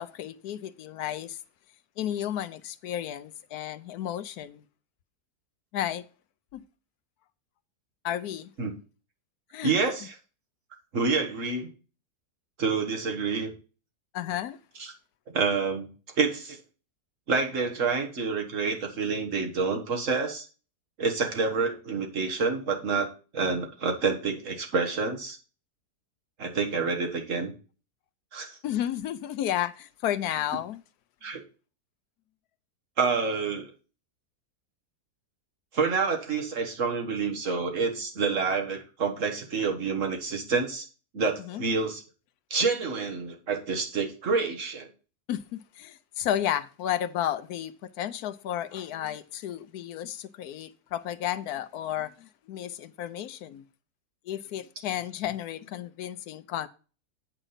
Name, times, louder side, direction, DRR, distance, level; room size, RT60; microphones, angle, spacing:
voice 1, 0.0-1.4 2.0-4.6 5.7-6.0 6.5-6.6 8.0-8.5 9.5-9.7 14.1-14.6 28.6-30.8 41.4-41.7 45.3-53.6 54.3-56.7, left 11 dB, 75° left, 1.1 m, -32 dB
voice 2, 9.6-10.1 10.9-11.7 12.6-13.5 14.8-14.9 15.3-15.9 16.2-16.6 17.3-20.5 21.0-25.4 26.4-27.5 28.3-28.6 31.2-31.4 33.0-33.7 35.7-40.9 41.1-42.0 42.5-44.9, right 4 dB, 50° right, 1.9 m, -28 dB
9.0 x 5.0 x 5.6 m
omnidirectional pair, 1.7 m